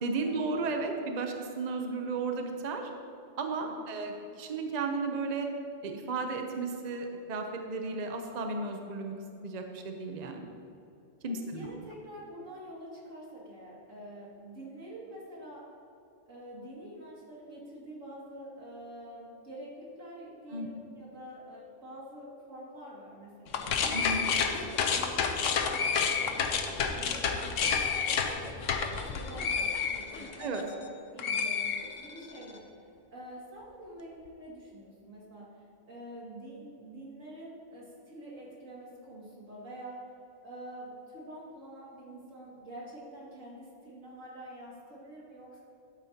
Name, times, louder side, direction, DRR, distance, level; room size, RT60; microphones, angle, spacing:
voice 1, 0.0-2.9 3.4-5.5 5.8-9.1 9.4-10.5 11.2-11.7 20.5-20.7 23.9-24.2 30.4-30.6, right 3 dB, 40° right, 4 dB, 0.7 m, -34 dB
voice 2, 3.6-3.9 11.2-15.7 16.3-23.6 24.0-26.6 26.9-28.7 29.1-30.4 31.1-32.7 33.1-40.1 40.4-45.6, right 1 dB, 85° right, -5 dB, 2.7 m, -46 dB
sound 1, 23.5-30.9 31.2-32.4, left 6 dB, 75° left, 1.1 m, -30 dB
12.0 x 8.9 x 2.9 m, 2.7 s
omnidirectional pair, 1.3 m